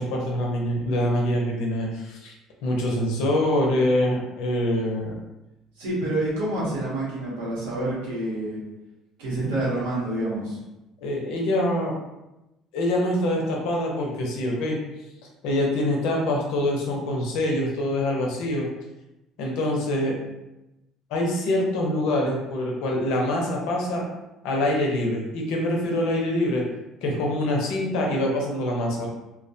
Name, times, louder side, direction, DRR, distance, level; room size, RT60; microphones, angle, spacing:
voice 1, 0.0-2.3 2.6-5.2 11.0-12.0 12.7-14.8 15.4-18.7 19.4-20.2 21.1-24.0 24.4-26.6 27.0-29.1, left 1 dB, 75° left, -1 dB, 0.6 m, -25 dB
voice 2, 5.8-8.6 9.2-10.6, right 1 dB, 90° right, -6 dB, 0.9 m, -27 dB
2.2 x 2.2 x 2.6 m, 0.95 s
supercardioid pair, 80°, 0 cm